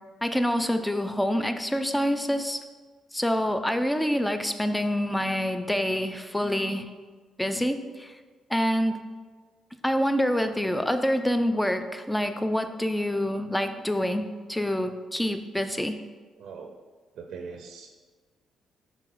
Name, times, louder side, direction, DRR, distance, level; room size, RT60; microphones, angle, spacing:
voice 1, 0.2-2.6 3.1-6.9 7.4-8.2 8.5-9.0 9.8-16.0, equal, 5° left, 8 dB, 0.4 m, -26 dB
voice 2, 16.4-16.8 17.1-17.9, right 5 dB, 75° right, 3 dB, 0.5 m, -41 dB
5.9 x 4.0 x 4.5 m, 1.4 s
cardioid pair, 90°, 0 cm